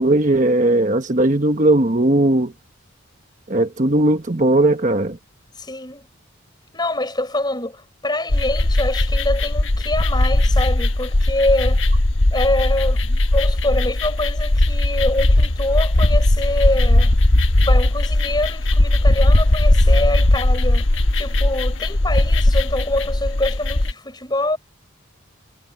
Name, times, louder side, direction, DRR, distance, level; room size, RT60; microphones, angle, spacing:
voice 1, 0.0-2.5 3.5-5.2, right 1 dB, 40° right, 1.2 m, -17 dB
voice 2, 5.6-6.1 6.7-12.1 12.3-17.1 17.6-24.6, left 1 dB, 20° left, 5.4 m, -25 dB
sound 1, 8.3-23.9, left 1 dB, 65° left, 1.2 m, -18 dB
head